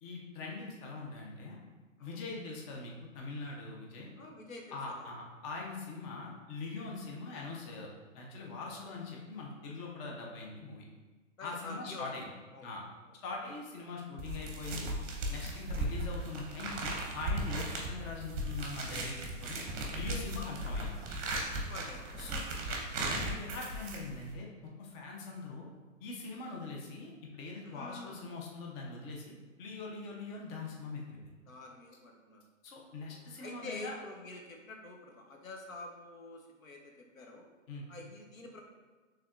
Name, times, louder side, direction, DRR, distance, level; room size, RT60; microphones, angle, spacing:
voice 1, 0.0-1.6 2.0-4.1 4.7-10.8 11.4-12.3 12.6-12.8 13.2-14.9 15.3-19.6 19.9-20.9 22.2-24.5 24.8-25.7 26.0-31.2 32.6-33.9 37.7-37.9, left 3 dB, 25° left, -1 dB, 0.7 m, -42 dB
voice 2, 4.2-5.1 11.4-12.7 20.4-20.6 21.4-22.4 27.6-28.2 31.5-32.4 33.1-37.4 37.9-38.6, left 2 dB, 90° left, 1 dB, 1.0 m, -48 dB
sound 1, 14.2-24.3, right 1 dB, 30° right, 0.9 m, -37 dB
5.8 x 3.4 x 2.4 m, 1.3 s
hypercardioid pair, 130°, 39 cm